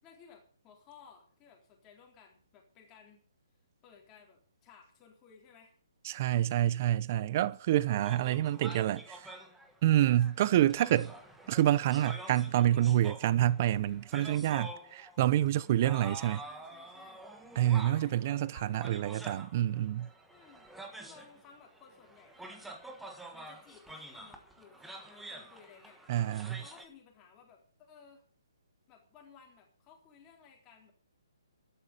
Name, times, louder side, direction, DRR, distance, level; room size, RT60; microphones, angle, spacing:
voice 1, 0.0-3.2 3.8-5.7 8.0-8.7 16.4-17.2 17.9-19.0 20.3-20.7 21.0-22.6 23.3-26.0 26.6-28.3 28.9-30.9, left 6 dB, 15° left, 3.8 m, -58 dB
voice 2, 6.0-9.3 9.8-11.1 11.5-16.4 17.6-20.1 26.1-26.6, right 12 dB, 30° right, 0.6 m, -27 dB
sound 1, 8.0-26.9, right 2 dB, 5° right, 1.4 m, -48 dB
12.5 x 11.5 x 6.7 m
hypercardioid pair, 170°, 3 cm